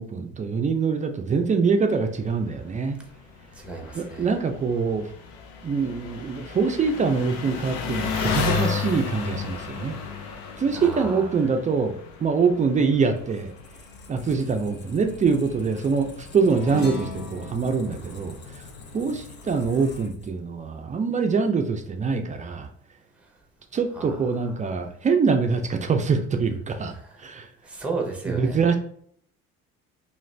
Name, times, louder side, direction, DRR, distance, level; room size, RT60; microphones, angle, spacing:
voice 1, 0.0-3.0 3.9-5.1 5.6-10.0 10.6-11.9 12.2-13.5 14.1-18.6 18.9-22.7 23.7-26.9 27.2-27.5 28.3-28.7, right 5 dB, 25° right, 5 dB, 0.4 m, -24 dB
Engine, 2.0-20.1, left 5 dB, 85° left, 0.6 m, -35 dB
voice 2, 3.5-4.3 10.7-11.3 23.9-24.2 26.9-27.1 27.6-28.6, right 3 dB, 5° right, 1 dB, 0.8 m, -33 dB
Squeak, 13.1-20.8, left 3 dB, 40° left, 0.6 m, -45 dB
sound 1, 16.5-21.2, left 3 dB, 60° left, 1.2 m, -39 dB
2.5 x 2.4 x 3.2 m, 0.63 s
supercardioid pair, 90°, 29 cm